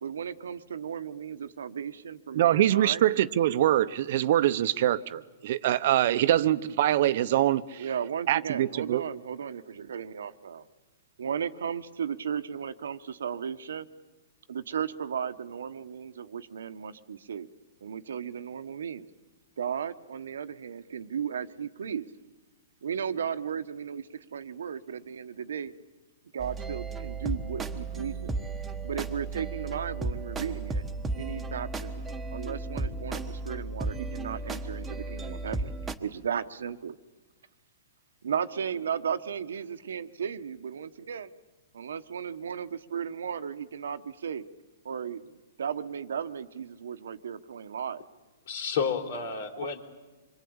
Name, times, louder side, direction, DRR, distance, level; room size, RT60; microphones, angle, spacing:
voice 1, 0.0-3.0 7.8-10.6 11.2-13.9 14.5-17.5 17.8-19.1 19.6-22.1 22.8-24.1 24.3-25.7 26.3-28.3 28.8-30.8 31.2-35.7 36.0-37.0 38.2-41.3 41.7-44.4 44.8-45.2 45.6-48.0, right 7 dB, 85° right, 1.2 m, -35 dB
voice 2, 2.3-7.9 8.3-9.0, right 12 dB, 55° right, 0.9 m, -24 dB
sound 1, 26.4-36.0, right 3 dB, 10° right, 1.3 m, -34 dB
voice 3, 48.5-49.8, left 6 dB, 65° left, 3.6 m, -30 dB
26.5 x 23.0 x 8.8 m
hypercardioid pair, 145°, 0 cm